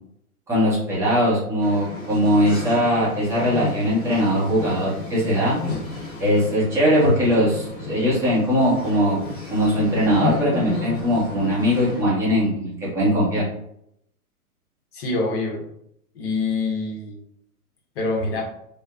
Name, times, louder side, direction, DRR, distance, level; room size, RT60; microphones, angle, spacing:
voice 1, 0.5-5.6 6.2-9.2 9.5-13.4, equal, 5° right, -8 dB, 0.7 m, -20 dB
sound 1, 1.6-12.0, left 4 dB, 20° left, 1.3 m, -33 dB
voice 2, 14.9-15.7 16.1-17.2 17.9-18.4, left 3 dB, 40° left, 0 dB, 1.0 m, -25 dB
3.3 x 2.0 x 2.4 m, 0.73 s
figure-of-eight pair, 115°, 46 cm